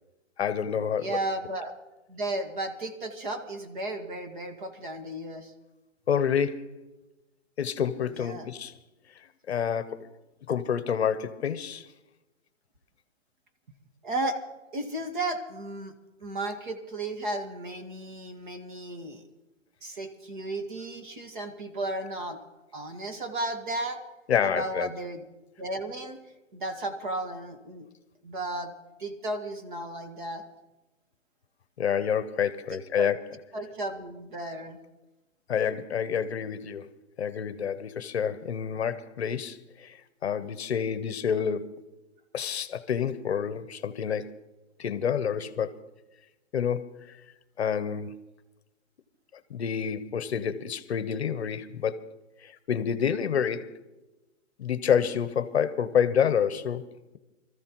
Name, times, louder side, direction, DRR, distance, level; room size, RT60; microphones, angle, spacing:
voice 1, 0.4-1.2 6.1-6.7 7.6-8.7 9.5-10.1 10.5-11.9 24.3-24.9 31.8-33.2 35.5-36.9 37.2-41.8 42.3-44.4 44.8-45.8 46.5-46.9 47.6-48.2 49.5-52.1 52.4-53.8 54.6-56.9, left 7 dB, 55° left, 0.9 m, -28 dB
voice 2, 1.0-1.8 2.1-5.5 8.1-8.5 14.0-14.4 14.7-15.9 16.2-19.2 19.8-22.4 22.7-24.0 24.4-25.2 25.6-26.2 26.5-27.9 28.2-28.7 29.0-30.4 32.7-33.1 33.5-34.8, right 2 dB, 40° right, 1.6 m, -34 dB
24.5 x 14.0 x 3.0 m
hypercardioid pair, 175°, 38 cm